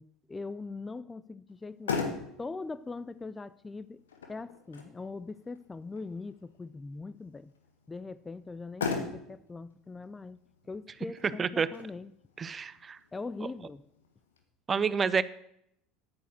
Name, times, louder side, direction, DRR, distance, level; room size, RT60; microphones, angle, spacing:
voice 1, 0.0-2.0 2.4-4.0 4.3-7.5 7.9-10.4 10.7-12.1 13.1-13.8, left 3 dB, 15° left, 0.5 m, -41 dB
Motor vehicle (road), 1.5-14.4, left 5 dB, 75° left, 1.7 m, -41 dB
voice 2, 12.4-13.0 14.7-15.2, right 6 dB, 25° right, 0.6 m, -28 dB
10.5 x 9.0 x 6.3 m
figure-of-eight pair, 70°, 0 cm